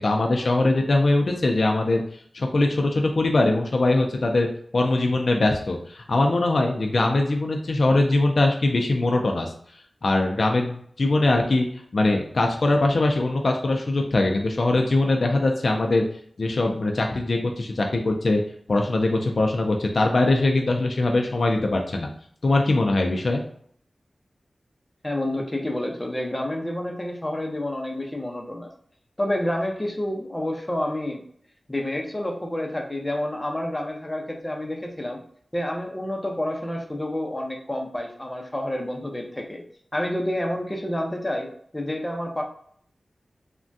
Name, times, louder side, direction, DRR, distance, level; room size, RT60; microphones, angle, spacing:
voice 1, 0.0-4.5 4.7-9.5 10.0-11.7 11.9-16.0 16.4-18.4 18.7-22.1 22.4-23.4, left 2 dB, 65° left, 2 dB, 0.4 m, -22 dB
voice 2, 25.0-28.7 29.2-31.2 31.7-35.2 35.5-39.6 39.9-41.5 41.7-42.5, left 1 dB, 20° left, 1 dB, 0.6 m, -29 dB
3.4 x 2.2 x 2.5 m, 0.62 s
wide cardioid pair, 95°, 0 cm